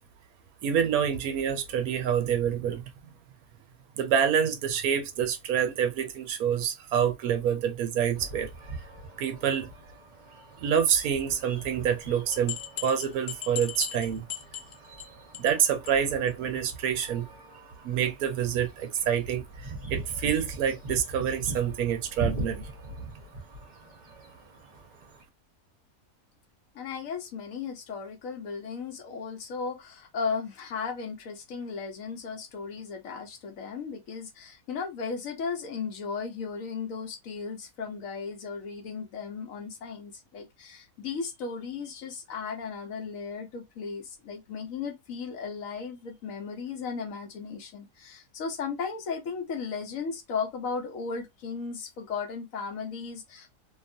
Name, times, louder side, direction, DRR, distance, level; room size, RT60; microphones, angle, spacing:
voice 1, 0.6-2.8 4.0-8.5 9.2-9.7 10.6-14.3 15.4-17.3 17.8-19.4 19.9-22.7, right 8 dB, 75° right, 1.0 m, -27 dB
sound 1, 8.1-25.2, right 2 dB, 35° right, 0.9 m, -42 dB
sound 2, 12.3-15.1 15.3-15.6 15.9-16.0 16.3-16.4 16.7-16.8, left 11 dB, 90° left, 0.5 m, -37 dB
voice 2, 26.7-53.5, left 5 dB, 65° left, 1.0 m, -36 dB
2.8 x 2.3 x 2.6 m
omnidirectional pair, 1.6 m